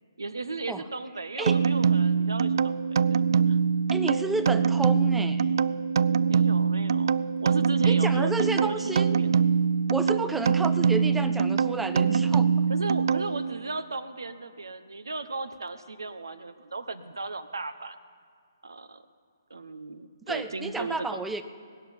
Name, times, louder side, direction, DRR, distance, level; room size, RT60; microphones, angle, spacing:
voice 1, 0.2-3.2 3.5-3.6 6.2-9.4 10.1-10.4 12.7-18.0 18.6-19.0 19.5-21.1, right 3 dB, 85° right, 12 dB, 0.9 m, -36 dB
sound 1, 1.5-13.6, right 6 dB, 60° right, 0.3 m, -24 dB
voice 2, 3.9-5.5 7.9-9.2 9.9-12.5 20.3-21.4, right 2 dB, 5° right, 10 dB, 0.5 m, -31 dB
19.0 x 6.9 x 8.8 m, 2.1 s
hypercardioid pair, 140°, 2 cm